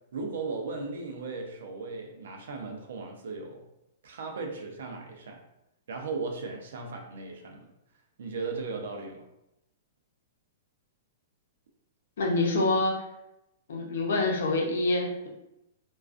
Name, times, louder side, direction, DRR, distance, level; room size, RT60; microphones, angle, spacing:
voice 1, 0.1-3.6 4.0-5.4 5.9-7.7 8.2-9.2, right 4 dB, 75° right, 2 dB, 0.5 m, -37 dB
voice 2, 12.2-13.0 13.7-15.3, left 2 dB, 70° left, 0 dB, 0.6 m, -26 dB
2.4 x 2.3 x 2.4 m, 0.87 s
hypercardioid pair, 170°, 0 cm